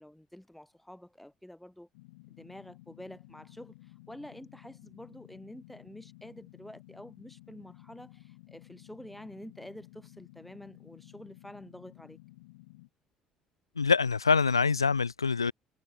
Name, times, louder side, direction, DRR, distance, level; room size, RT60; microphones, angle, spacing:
voice 1, 0.0-1.9 2.3-12.2, left 1 dB, 5° left, 7.0 m, -48 dB
sound 1, 1.9-12.9, left 21 dB, 70° left, 2.9 m, -54 dB
voice 2, 13.8-15.5, left 5 dB, 90° left, 0.5 m, -25 dB
figure-of-eight pair, 55°, 2 cm